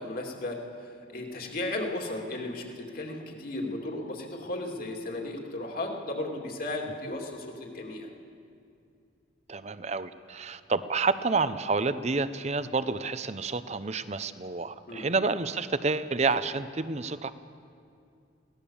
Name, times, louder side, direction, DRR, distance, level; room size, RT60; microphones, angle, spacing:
voice 1, 0.0-8.1 14.9-15.1, left 2 dB, 50° left, 1 dB, 2.7 m, -35 dB
voice 2, 9.5-17.3, right 4 dB, 35° right, 13 dB, 0.7 m, -29 dB
22.5 x 17.0 x 7.2 m, 2.4 s
head